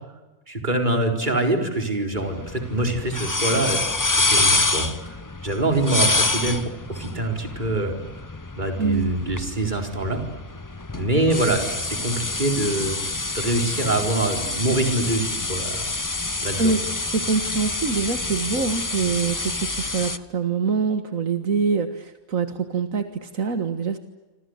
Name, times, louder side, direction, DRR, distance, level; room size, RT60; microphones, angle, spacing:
voice 1, 0.5-5.2 5.4-6.6 6.9-8.0 8.6-10.2 10.9-13.0 13.3-15.8 16.4-16.7, right 2 dB, 35° right, 4 dB, 4.5 m, -24 dB
sound 1, 2.1-20.2, left 2 dB, 15° left, 0.8 m, -27 dB
voice 2, 8.8-9.1 16.6-24.0, right 5 dB, 75° right, 8 dB, 2.0 m, -25 dB
28.0 x 26.5 x 8.0 m, 1.1 s
omnidirectional pair, 1.4 m